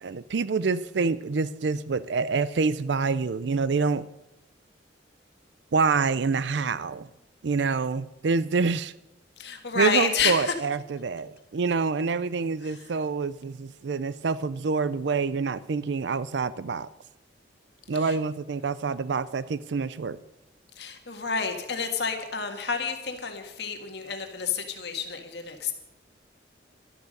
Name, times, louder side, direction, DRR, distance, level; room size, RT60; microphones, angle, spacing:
voice 1, 0.0-4.1 5.7-7.1 7.4-8.9 9.7-16.9 17.9-20.2, right 4 dB, 70° right, 16 dB, 0.5 m, -27 dB
voice 2, 9.4-10.5 18.0-18.1 20.8-25.7, left 5 dB, 60° left, 5 dB, 1.7 m, -29 dB
12.0 x 11.5 x 6.5 m, 0.92 s
head